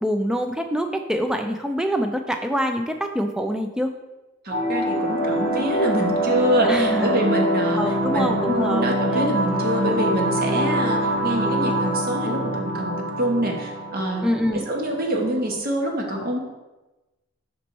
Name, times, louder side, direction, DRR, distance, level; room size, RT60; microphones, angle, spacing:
voice 1, 0.0-3.9 6.6-7.1 7.8-8.8 9.1-9.3 14.2-14.7, equal, 5° right, 5 dB, 0.3 m, -25 dB
voice 2, 4.4-7.8 8.1-16.4, equal, 40° right, 1 dB, 0.9 m, -25 dB
sound 1, 4.5-15.5, right 1 dB, 70° right, 0.9 m, -24 dB
5.3 x 4.1 x 4.5 m, 1.1 s
head